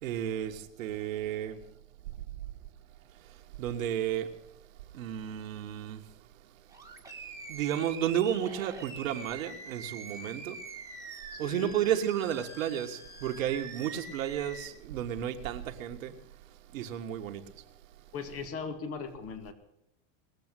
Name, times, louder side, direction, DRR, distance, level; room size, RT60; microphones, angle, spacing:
voice 1, 0.0-1.6 3.6-4.3 4.9-6.0 7.5-10.6 11.4-16.2 16.7-17.4, right 10 dB, 75° right, 1.8 m, -32 dB
Animal, 6.7-14.7, right 3 dB, 10° right, 2.0 m, -45 dB
voice 2, 11.3-11.8 18.1-19.5, left 5 dB, 35° left, 2.2 m, -38 dB
20.0 x 7.6 x 9.1 m
supercardioid pair, 125°, 40 cm